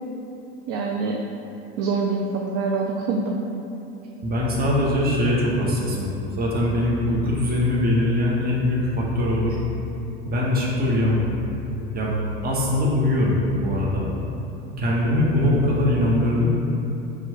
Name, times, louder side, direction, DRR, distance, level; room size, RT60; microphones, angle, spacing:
voice 1, 0.7-1.2 1.8-3.4, right 4 dB, 65° right, 0 dB, 0.5 m, -25 dB
voice 2, 4.2-6.1 6.4-9.6 10.2-11.3 11.9-14.1 14.8-16.5, left 1 dB, 30° right, -4 dB, 1.0 m, -22 dB
4.4 x 2.3 x 4.2 m, 2.8 s
hypercardioid pair, 85°, 32 cm